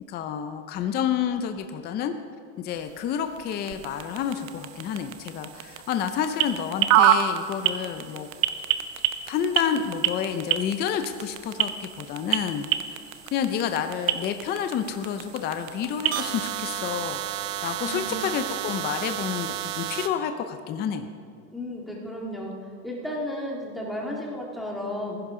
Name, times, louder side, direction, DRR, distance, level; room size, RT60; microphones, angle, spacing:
voice 1, 0.1-2.2 2.6-8.3 9.3-12.7 13.3-21.1, left 8 dB, 25° left, 8 dB, 0.5 m, -29 dB
sound 1, 2.7-20.1, right 11 dB, 90° right, 0.8 m, -29 dB
voice 2, 17.8-18.2 21.5-22.5 22.8-25.1, left 1 dB, ahead, -3 dB, 1.9 m, -33 dB
15.5 x 11.0 x 3.7 m, 2.3 s
supercardioid pair, 145°, 39 cm